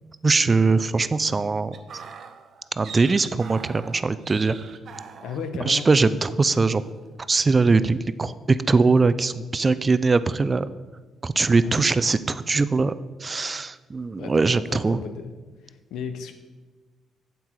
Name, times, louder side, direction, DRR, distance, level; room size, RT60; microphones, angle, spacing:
voice 1, 0.2-1.7 2.8-4.6 5.7-6.8 7.3-8.4 8.7-10.7 11.2-12.9 13.2-15.0, right 4 dB, 30° right, 14 dB, 0.4 m, -21 dB
sound 1, 1.7-5.5 5.7-6.1 6.4-6.7, right 6 dB, 60° right, 0.7 m, -42 dB
voice 2, 5.2-5.9 11.6-11.9 14.1-15.3 15.6-16.3, left 6 dB, 80° left, 8 dB, 0.8 m, -35 dB
8.1 x 8.1 x 4.6 m, 1.3 s
cardioid pair, 90°, 0 cm